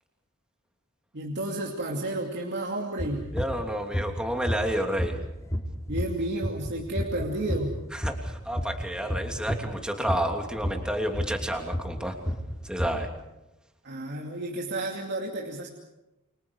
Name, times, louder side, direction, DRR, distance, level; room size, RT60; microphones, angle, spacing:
voice 1, 1.1-3.3 5.9-7.8 13.8-15.7, right 1 dB, 55° right, -1 dB, 2.6 m, -31 dB
sound 1, 3.0-9.7 10.0-13.1, equal, 15° left, 3.3 m, -29 dB
voice 2, 3.3-5.2 7.9-12.2 12.6-13.1, equal, 5° right, 3 dB, 3.0 m, -30 dB
29.5 x 24.5 x 4.9 m, 0.96 s
head